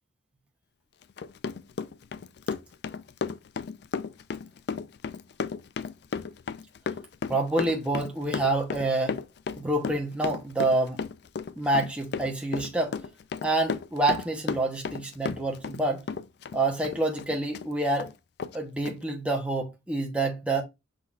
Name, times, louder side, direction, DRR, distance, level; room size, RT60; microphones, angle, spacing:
Run, 1.0-15.8 16.1-17.7 18.0-18.1 18.4-18.6 18.9-19.0, left 5 dB, 55° left, 0.3 m, -34 dB
voice 1, 7.3-9.2 9.5-11.0 11.6-13.0 13.4-16.0 16.5-18.1 18.5-20.6, right 2 dB, 5° right, 0.9 m, -27 dB
5.4 x 3.9 x 2.4 m
head